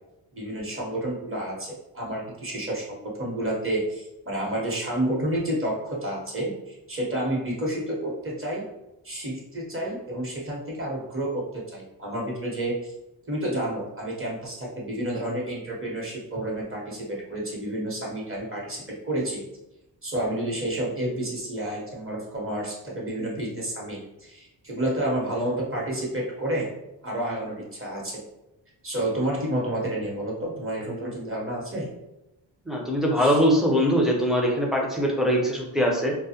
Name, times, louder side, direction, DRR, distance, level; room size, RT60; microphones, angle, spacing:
voice 1, 0.3-8.7 9.0-12.9 13.3-19.4 20.0-26.7 27.0-28.2 28.8-31.9 33.2-33.4, right 1 dB, 30° right, -3 dB, 1.0 m, -30 dB
voice 2, 32.7-36.1, equal, ahead, -1 dB, 0.6 m, -22 dB
2.2 x 2.1 x 2.8 m, 0.94 s
cardioid pair, 55°, 45 cm